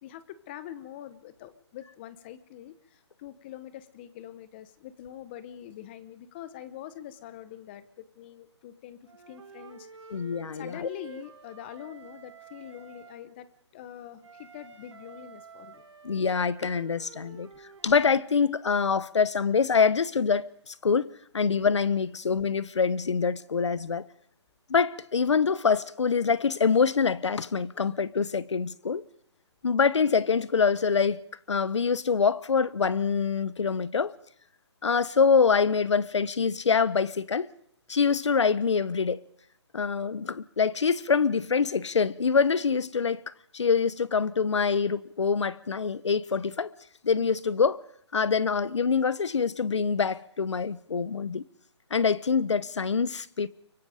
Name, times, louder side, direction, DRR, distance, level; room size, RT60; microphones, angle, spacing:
voice 1, 0.0-9.9 10.5-13.5 13.7-15.8, left 11 dB, 25° left, 1.0 m, -44 dB
Wind instrument woodwind instrument, 9.1-13.2 14.2-18.1, right 5 dB, 85° right, 3.3 m, -50 dB
voice 2, 10.1-10.9 16.0-17.5 17.8-24.1 24.7-29.0 29.6-31.2 31.5-34.1 34.8-37.5 37.9-39.2 39.7-43.2 43.5-46.7 47.0-47.8 48.1-51.4 51.9-53.5, left 5 dB, 80° left, 1.1 m, -25 dB
24.5 x 24.0 x 5.1 m
hypercardioid pair, 160°, 15 cm